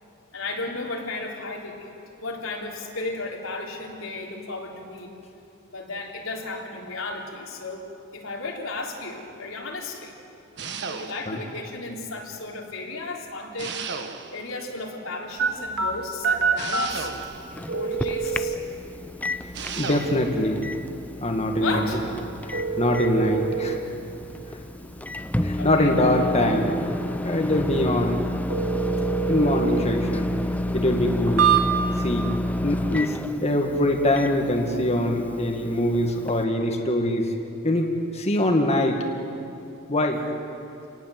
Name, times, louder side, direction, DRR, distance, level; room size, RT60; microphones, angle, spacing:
voice 1, 0.3-1.9 2.2-5.1 5.7-10.1 10.8-13.8 14.3-17.1 17.6-18.6 21.6-22.0 25.6-25.9, left 3 dB, 90° left, -1 dB, 3.6 m, -34 dB
sound 1, 10.6-11.5 13.6-14.5 16.6-17.6 19.5-20.3, right 5 dB, 60° right, 1.4 m, -34 dB
sound 2, 15.4-32.1, right 6 dB, 85° right, 2.0 m, -29 dB
Microwave oven, 17.1-36.4, left 1 dB, 10° left, 0.6 m, -31 dB
voice 2, 19.8-20.6 21.2-22.0 22.5-23.8 25.4-26.8 27.2-28.2 29.3-30.3 30.7-31.5 32.0-32.3 32.6-33.2 33.4-37.9 38.1-39.0 39.9-40.2, left 1 dB, 30° left, 2 dB, 1.9 m, -23 dB
28.0 x 19.0 x 7.8 m, 2.7 s
head